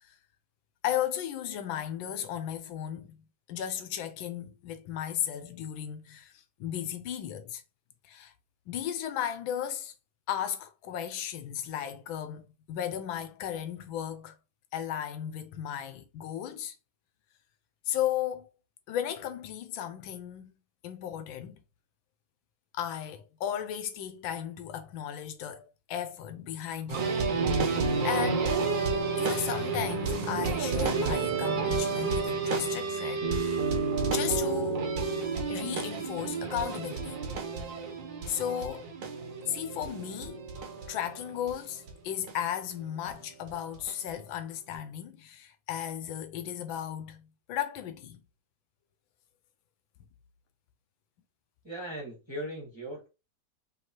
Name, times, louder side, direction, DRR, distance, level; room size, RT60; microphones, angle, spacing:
voice 1, 0.8-3.2 3.5-7.6 8.0-8.3 8.7-9.9 10.3-14.3 14.7-16.7 17.9-18.5 18.9-20.5 20.8-21.6 22.7-27.2 27.7-28.6 29.2-33.3 34.1-34.8 35.5-37.2 38.3-38.9 39.5-40.5 40.8-48.2, left 10 dB, 85° left, 1.4 m, -35 dB
sound 1, 26.9-41.5 41.9-42.0 42.3-42.4 43.1-43.2 43.5-44.1 44.7-44.8, right 4 dB, 70° right, 1.6 m, -30 dB
voice 2, 51.6-53.1, right 1 dB, 15° right, 1.3 m, -38 dB
5.5 x 2.9 x 2.9 m
omnidirectional pair, 2.1 m